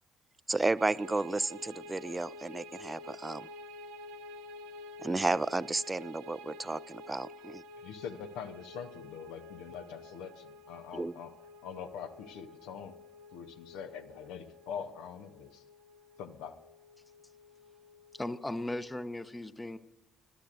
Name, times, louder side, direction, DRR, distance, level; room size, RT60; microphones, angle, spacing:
voice 1, 0.5-3.5 5.0-7.6 10.9-11.1, right 2 dB, 20° right, 20 dB, 0.3 m, -32 dB
sound 1, 0.8-19.0, left 2 dB, 80° right, 0.9 m, -50 dB
voice 2, 7.8-11.3 11.6-13.0 13.3-15.6 16.2-16.6, left 7 dB, 75° left, 9 dB, 0.8 m, -43 dB
voice 3, 18.1-19.8, left 1 dB, 15° left, 13 dB, 0.8 m, -37 dB
20.0 x 12.0 x 2.5 m, 1.0 s
hypercardioid pair, 45°, 0 cm